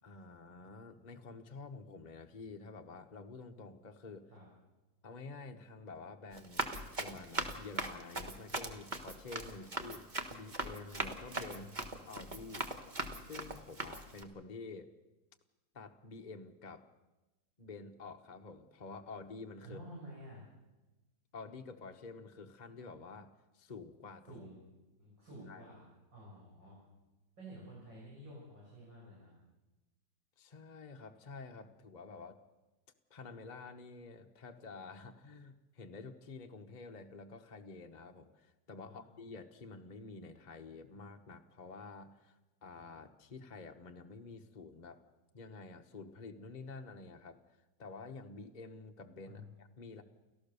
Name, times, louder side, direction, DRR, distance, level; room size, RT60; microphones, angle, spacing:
voice 1, 0.0-4.3 5.0-10.0 10.3-11.6 12.1-12.7 13.2-14.9 15.7-16.8 17.6-19.8 21.3-24.4 25.5-25.7 30.4-32.4 33.1-45.0 45.3-47.4 47.8-50.0, left 3 dB, 30° left, 4 dB, 0.9 m, -49 dB
Run, 6.3-14.2, right 2 dB, 25° right, 1.5 m, -40 dB
voice 2, 11.5-11.9 19.6-20.5 24.3-24.6 25.0-26.8 27.4-29.3 38.9-39.1 49.3-49.5, right 1 dB, 85° right, -5 dB, 7.8 m, -51 dB
30.0 x 14.0 x 6.9 m, 1.1 s
omnidirectional pair, 2.0 m